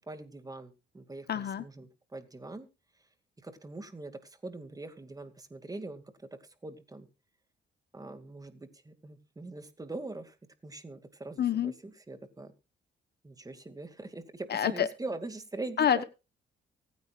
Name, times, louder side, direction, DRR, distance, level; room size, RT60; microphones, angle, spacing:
voice 1, 0.1-2.7 3.4-6.0 6.6-7.1 7.9-10.3 10.6-12.5 13.2-16.0, right 2 dB, 20° right, 9 dB, 2.4 m, -42 dB
voice 2, 1.3-1.6 11.4-11.7 14.5-14.9 15.8-16.0, left 9 dB, 55° left, 13 dB, 1.1 m, -27 dB
24.5 x 9.6 x 2.5 m, 0.29 s
cardioid pair, 90°, 20 cm